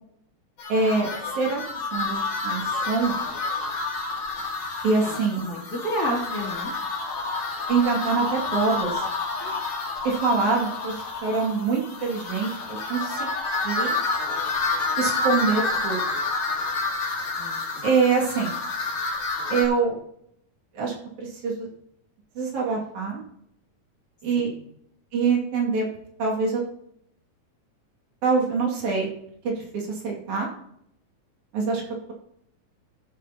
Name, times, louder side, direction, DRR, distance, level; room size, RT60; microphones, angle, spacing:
sound 1, 0.6-19.7, left 3 dB, 70° left, 4.0 m, -29 dB
voice 1, 0.7-1.1 1.4-1.6 1.9-3.1 4.8-5.5 7.7-9.0 10.1-11.0 11.2-12.5 12.9-13.3 13.6-14.0 15.0-16.0 17.8-18.5 19.5-20.0 20.8-21.7 22.4-23.2 24.2-24.5 25.1-25.9 26.2-26.6 28.2-29.1 29.5-30.5 31.5-31.8, right 4 dB, 70° right, -1 dB, 3.5 m, -24 dB
voice 2, 5.0-6.7 9.4-9.6 17.3-17.9 24.3-24.4, equal, 30° left, -4 dB, 2.8 m, -31 dB
15.5 x 9.1 x 2.8 m, 0.74 s
omnidirectional pair, 3.6 m